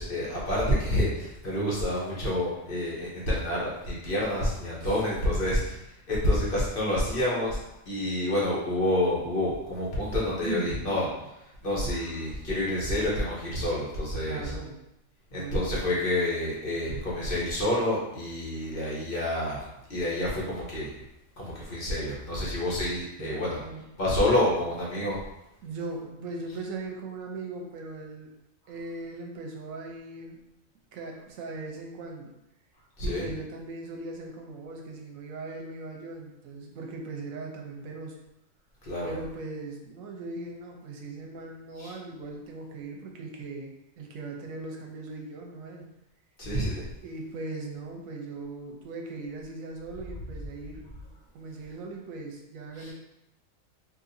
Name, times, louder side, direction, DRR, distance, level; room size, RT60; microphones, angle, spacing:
voice 1, 0.0-5.7 6.1-7.6 7.9-11.1 11.6-14.5 15.3-19.6 19.9-20.9 21.4-23.6 24.0-25.2 33.0-33.2 38.8-39.1 41.8-41.9 46.4-46.9 52.8-52.9, left 1 dB, 45° left, -5 dB, 1.0 m, -28 dB
voice 2, 10.4-10.8 14.2-14.8 15.3-15.7 23.2-23.8 25.6-28.3 28.7-30.4 30.9-32.3 33.0-38.2 39.0-45.9 47.0-50.8 51.3-52.9, right 3 dB, 85° right, 1 dB, 1.1 m, -39 dB
3.9 x 2.5 x 2.6 m, 0.86 s
omnidirectional pair, 1.4 m